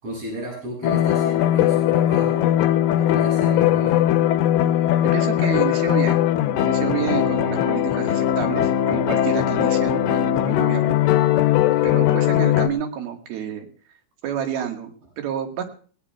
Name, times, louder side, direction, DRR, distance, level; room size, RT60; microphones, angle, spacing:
voice 1, 0.0-2.5 2.9-4.0 11.8-11.9, right 1 dB, 40° right, -3 dB, 8.7 m, -34 dB
sound 1, 0.8-12.7, left 12 dB, 80° left, 2.4 m, -19 dB
voice 2, 5.1-6.2 6.6-11.0 11.8-13.7 14.2-15.6, right 9 dB, 90° right, 4 dB, 3.6 m, -29 dB
20.0 x 18.5 x 2.3 m, 0.42 s
omnidirectional pair, 4.2 m